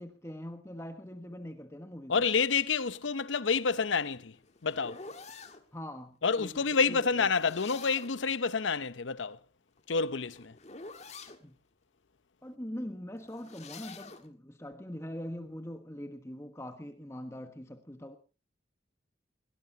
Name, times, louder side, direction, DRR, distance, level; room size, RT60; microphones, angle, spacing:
voice 1, 0.0-2.2 5.7-7.3 11.4-11.5 12.4-18.2, equal, 15° left, 1.3 m, -42 dB
voice 2, 2.1-4.3 4.6-5.0 6.2-9.4 9.9-10.5, left 5 dB, 90° left, 0.8 m, -28 dB
sound 1, 3.8-5.6 7.1-8.3 9.7-11.4 13.2-14.3, left 4 dB, 35° left, 1.8 m, -48 dB
22.0 x 18.0 x 2.8 m
head